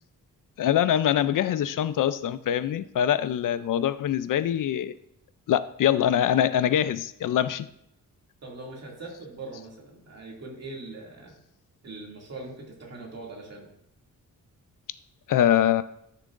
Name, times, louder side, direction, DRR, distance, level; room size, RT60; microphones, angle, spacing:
voice 1, 0.6-4.9 5.5-7.7 15.3-15.8, left 10 dB, 65° left, 15 dB, 0.4 m, -24 dB
voice 2, 8.4-11.3 11.8-13.7, right 2 dB, 45° right, -2 dB, 2.4 m, -41 dB
13.0 x 6.8 x 2.5 m, 0.79 s
wide cardioid pair, 165°, 35 cm